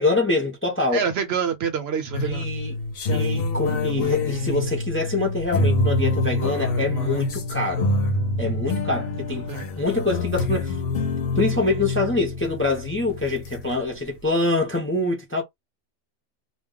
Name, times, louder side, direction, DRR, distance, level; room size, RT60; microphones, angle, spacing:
voice 1, 0.0-1.1 2.2-2.7 3.1-7.9 8.4-9.5 9.8-10.8 11.3-15.4, left 2 dB, 15° left, 0.5 m, -25 dB
voice 2, 0.9-2.5 9.5-9.6, right 7 dB, 65° right, 0.8 m, -26 dB
sound 1, 2.1-13.8, left 2 dB, 60° left, 0.8 m, -26 dB
2.2 x 2.2 x 3.7 m
omnidirectional pair, 1.3 m